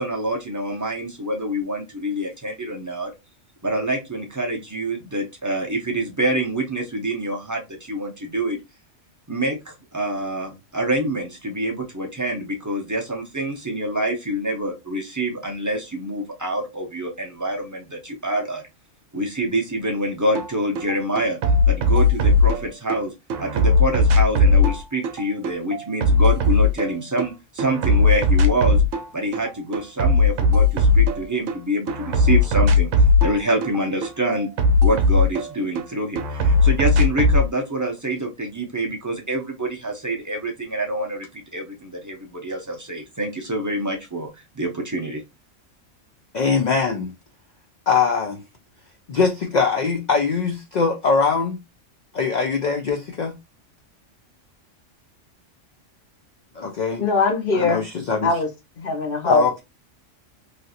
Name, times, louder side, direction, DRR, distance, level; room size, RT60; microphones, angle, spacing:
voice 1, 0.0-3.1 3.6-8.6 9.3-18.6 19.1-21.4 21.7-23.1 23.4-28.8 29.1-32.9 33.2-34.5 34.8-41.3 41.5-44.3 44.6-45.2, right 1 dB, 25° right, 0.4 m, -26 dB
sound 1, 20.4-20.5 20.8-23.0 23.3-27.3 27.6-29.1 29.3-31.6 31.9-35.9 36.2-37.5, left 3 dB, 75° right, 0.9 m, -18 dB
voice 2, 46.3-47.1 47.9-48.4 49.1-51.6 52.1-53.3 56.6-57.0 57.5-58.3 59.2-59.5, left 5 dB, 75° left, 0.4 m, -21 dB
voice 3, 57.0-57.8 58.2-58.5 58.8-59.6, left 4 dB, 50° left, 0.8 m, -22 dB
3.3 x 2.5 x 2.6 m
omnidirectional pair, 1.3 m